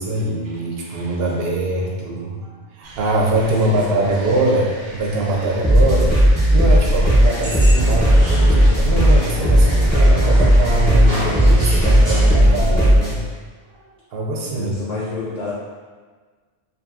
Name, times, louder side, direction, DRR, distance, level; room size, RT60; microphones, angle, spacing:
voice 1, 0.0-13.2 13.7-14.8, right 2 dB, 65° right, -3 dB, 0.7 m, -23 dB
sound 1, 2.8-12.4, right 1 dB, 90° right, 0.9 m, -38 dB
voice 2, 3.7-4.2 12.4-13.0 14.5-15.5, left 3 dB, 55° left, -8 dB, 0.4 m, -30 dB
sound 2, 5.6-13.1, equal, 10° left, 0.7 m, -14 dB
sound 3, 7.2-12.4, equal, 35° right, 0.5 m, -29 dB
2.6 x 2.6 x 2.4 m, 1.5 s
omnidirectional pair, 1.2 m